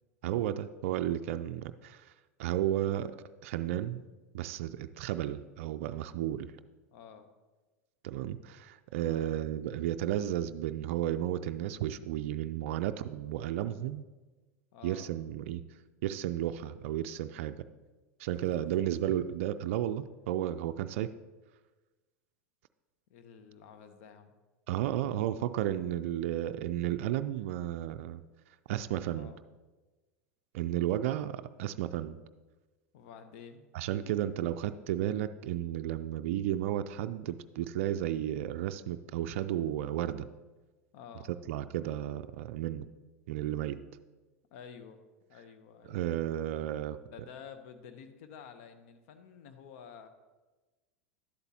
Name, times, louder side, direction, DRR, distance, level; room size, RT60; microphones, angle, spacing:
voice 1, 0.2-2.0 2.4-3.2 3.4-4.0 4.3-6.5 8.0-14.0 14.8-15.6 16.0-17.5 18.2-21.1 24.7-28.2 28.7-29.3 30.5-32.2 33.7-40.3 41.5-42.9 43.3-43.8 45.9-47.0, right 12 dB, 60° right, 11 dB, 0.3 m, -33 dB
voice 2, 6.9-7.3 9.0-9.3 14.7-15.1 18.3-19.1 23.1-24.3 29.1-29.4 32.9-33.6 40.9-41.3 44.5-45.0 45.3-46.1 47.1-50.1, left 7 dB, 60° left, 9 dB, 0.8 m, -51 dB
11.0 x 8.0 x 2.8 m, 1.2 s
hypercardioid pair, 90°, 8 cm